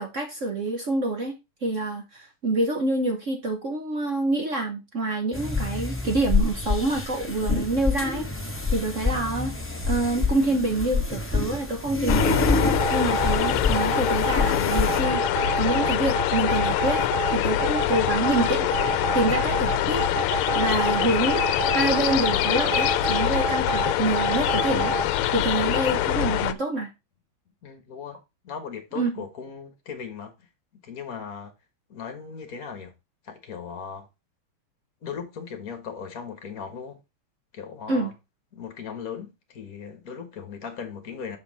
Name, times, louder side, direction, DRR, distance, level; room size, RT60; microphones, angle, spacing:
voice 1, 0.0-1.4 1.6-8.2 8.7-9.5 9.9-20.0 20.3-24.9 25.3-26.9 28.9-29.2 37.9-38.1, right 2 dB, 50° right, 0.9 m, -27 dB
sound 1, 5.3-15.0, left 3 dB, 10° left, 0.6 m, -27 dB
sound 2, 12.1-26.5, left 12 dB, 85° left, 1.5 m, -24 dB
sound 3, 12.6-25.0, right 8 dB, 90° right, 0.9 m, -29 dB
voice 2, 27.6-28.2 28.4-30.5 30.8-31.5 31.9-32.9 33.2-34.1 35.0-37.0 37.5-38.2 38.5-41.4, left 6 dB, 45° left, 1.6 m, -38 dB
6.3 x 5.6 x 4.0 m
omnidirectional pair, 2.4 m